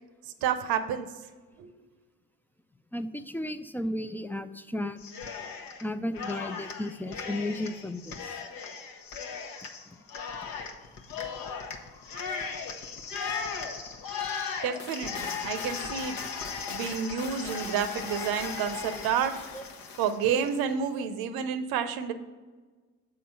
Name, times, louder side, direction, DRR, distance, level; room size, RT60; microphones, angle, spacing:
voice 1, 0.4-1.1 1.6-1.7 14.6-16.2 16.7-19.4 20.0-22.1, right 7 dB, 70° right, 11 dB, 0.7 m, -29 dB
voice 2, 2.9-5.0 5.8-8.4 19.0-19.1 19.5-19.6 21.0-21.1, left 1 dB, 5° left, 10 dB, 0.3 m, -34 dB
Cheering, 5.0-5.8 6.1-20.6, left 6 dB, 60° left, 0.9 m, -37 dB
7.4 x 3.8 x 5.8 m, 1.4 s
hypercardioid pair, 45°, 38 cm